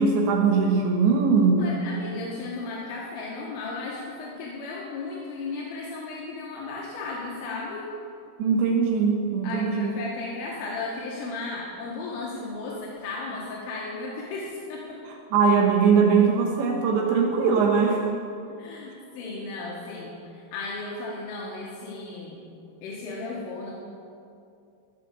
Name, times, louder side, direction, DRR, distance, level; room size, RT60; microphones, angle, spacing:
voice 1, 0.0-1.8 8.4-9.9 15.3-18.1, right 5 dB, 75° right, 1 dB, 2.9 m, -21 dB
voice 2, 1.6-7.9 8.5-8.6 9.4-15.0 18.6-22.4 22.8-23.7, left 3 dB, 80° left, -4 dB, 4.0 m, -35 dB
17.5 x 6.5 x 6.6 m, 2.5 s
omnidirectional pair, 5.8 m